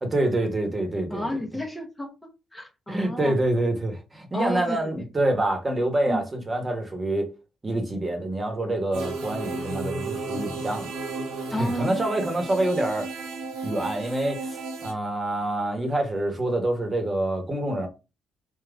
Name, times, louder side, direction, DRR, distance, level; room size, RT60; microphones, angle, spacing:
voice 1, 0.0-1.3 2.9-7.3 7.6-10.9 11.5-13.1 13.6-17.9, right 1 dB, 25° right, 1.3 m, -26 dB
voice 2, 1.1-2.1 2.5-3.3 4.3-4.8 6.1-6.2 11.5-12.0, equal, 15° left, 1.0 m, -31 dB
sound 1, 8.9-14.9, right 3 dB, 85° right, 1.4 m, -33 dB
3.7 x 3.0 x 3.5 m
cardioid pair, 90°, 0 cm